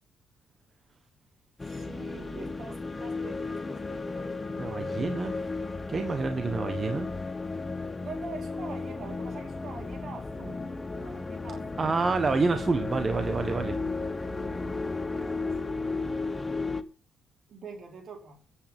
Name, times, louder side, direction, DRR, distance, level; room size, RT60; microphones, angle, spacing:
sound 1, 1.6-16.8, left 3 dB, 20° left, 1.2 m, -34 dB
voice 1, 1.6-4.4 8.0-10.7 11.0-11.9 15.4-15.8 17.5-18.4, right 4 dB, 60° right, 3 dB, 4.2 m, -45 dB
voice 2, 4.6-5.3 5.9-7.1 11.8-13.7, right 4 dB, 35° right, 8 dB, 1.2 m, -28 dB
22.5 x 8.6 x 3.7 m, 0.31 s
cardioid pair, 90°, 0 cm